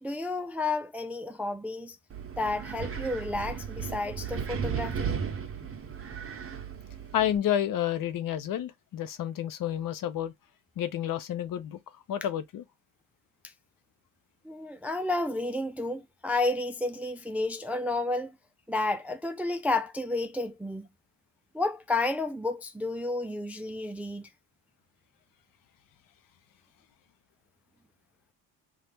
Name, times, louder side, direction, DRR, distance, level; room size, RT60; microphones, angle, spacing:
voice 1, 0.0-2.0 2.4-5.2 14.4-18.3 18.7-20.9 21.5-24.3, left 2 dB, 5° right, 0.3 m, -31 dB
Wind, 2.1-7.4, right 7 dB, 30° right, 0.8 m, -35 dB
voice 2, 7.1-10.3 10.8-12.6, left 10 dB, 55° left, 0.7 m, -30 dB
2.8 x 2.4 x 3.5 m
supercardioid pair, 80°, 41 cm